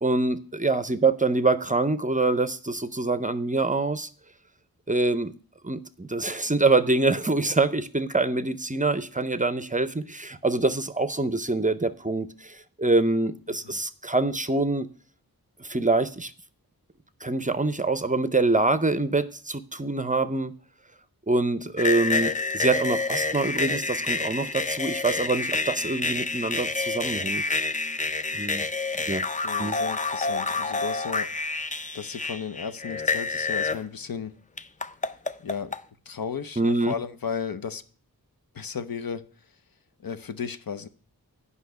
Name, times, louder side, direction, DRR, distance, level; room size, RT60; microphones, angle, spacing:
voice 1, 0.0-4.1 4.9-5.3 5.6-14.9 15.6-16.3 17.2-20.5 21.3-27.4 28.3-28.6 29.1-29.2 29.6-29.8 36.6-36.9, right 3 dB, 20° right, 0.6 m, -25 dB
sound 1, 21.8-33.8 34.6-35.8, left 3 dB, 20° left, 0.4 m, -28 dB
voice 2, 29.4-31.3 31.9-34.3 35.4-35.7 36.1-37.8 38.5-39.2 40.0-40.9, left 6 dB, 65° left, 0.8 m, -34 dB
8.3 x 5.5 x 7.9 m
wide cardioid pair, 70°, 37 cm